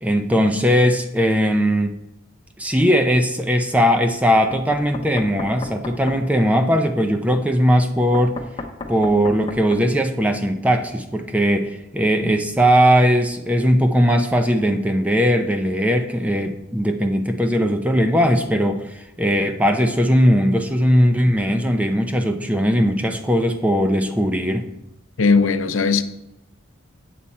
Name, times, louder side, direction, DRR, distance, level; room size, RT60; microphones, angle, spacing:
voice 1, 0.0-2.0 2.6-8.4 8.9-24.6, equal, 5° right, 0.5 m, -19 dB
Knock, 4.5-6.2 8.1-9.9, left 2 dB, 25° left, 0.8 m, -33 dB
voice 2, 25.2-26.0, left 4 dB, 75° left, 0.6 m, -17 dB
8.5 x 7.4 x 4.2 m
head